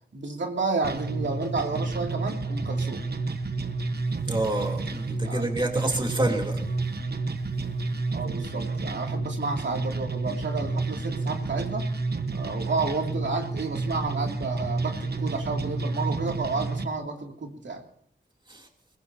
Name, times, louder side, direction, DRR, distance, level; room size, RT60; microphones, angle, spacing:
voice 1, 0.1-3.1 5.2-5.6 8.1-11.9 12.3-17.8, right 3 dB, 80° right, 2 dB, 2.6 m, -31 dB
sound 1, 0.8-16.8, right 3 dB, 60° right, 1.2 m, -30 dB
voice 2, 4.2-6.6 18.5-18.7, right 2 dB, 25° right, 2 dB, 2.9 m, -28 dB
22.0 x 21.5 x 2.8 m, 0.65 s
wide cardioid pair, 105°, 19 cm